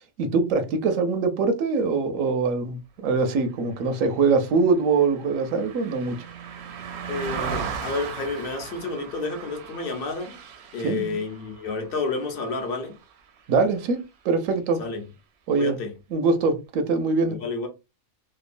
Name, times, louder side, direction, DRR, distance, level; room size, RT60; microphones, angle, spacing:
voice 1, 0.2-6.2 10.8-11.2 13.5-14.0 14.2-14.8 15.5-15.8 16.1-17.4, right 4 dB, 85° right, 1.0 m, -23 dB
Car passing by, 3.8-13.4 13.8-14.0, right 7 dB, 65° right, 0.7 m, -37 dB
voice 2, 7.1-10.4 10.7-13.0 14.8-15.0 15.6-15.9 17.3-17.7, left 3 dB, 50° left, 0.8 m, -30 dB
2.9 x 2.3 x 2.5 m
omnidirectional pair, 1.3 m